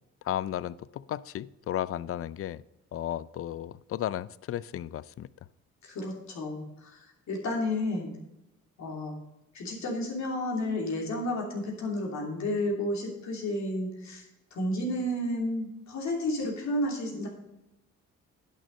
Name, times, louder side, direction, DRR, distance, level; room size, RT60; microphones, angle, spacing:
voice 1, 0.2-2.6 2.9-5.3, left 12 dB, 50° left, 19 dB, 0.5 m, -34 dB
voice 2, 5.8-8.1 8.8-9.2 9.5-14.2 14.5-17.3, left 1 dB, 65° left, -2 dB, 3.0 m, -31 dB
10.5 x 6.5 x 5.3 m, 0.93 s
cardioid pair, 90°, 30 cm